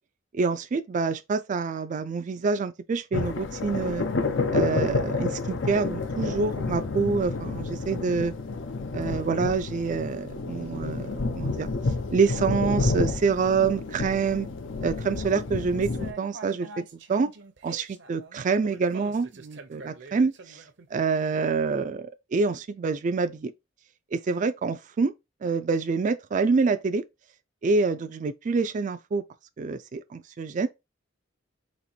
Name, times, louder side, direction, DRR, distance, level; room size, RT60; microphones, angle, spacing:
voice 1, 0.3-4.1 4.5-8.3 8.9-11.7 12.1-14.5 14.8-16.7 17.1-17.3 17.6-20.3 20.9-23.5 24.1-25.1 25.4-27.0 27.6-29.2 29.6-30.7, right 4 dB, 40° right, 0.3 m, -26 dB
sound 1, 3.1-16.1, left 3 dB, 75° left, 0.6 m, -29 dB
sound 2, 15.8-21.4, right 4 dB, 65° right, 0.8 m, -45 dB
4.2 x 3.0 x 4.3 m
head